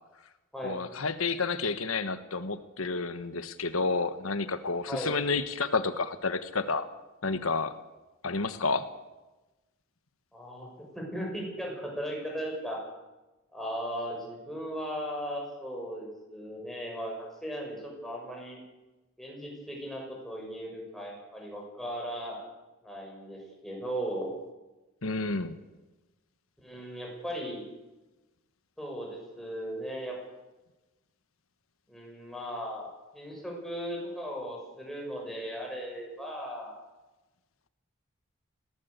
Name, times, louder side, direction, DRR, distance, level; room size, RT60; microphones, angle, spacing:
voice 1, 0.6-6.9 7.2-7.7 8.2-8.9 25.0-25.5, left 4 dB, 85° left, 11 dB, 1.3 m, -30 dB
voice 2, 10.3-10.7 10.9-12.8 13.5-17.1 17.4-18.6 19.2-22.4 22.8-24.3 26.6-27.6 28.8-30.2 31.9-32.9 33.1-36.7, equal, ahead, -2 dB, 6.7 m, -37 dB
20.5 x 17.0 x 8.3 m, 1.1 s
head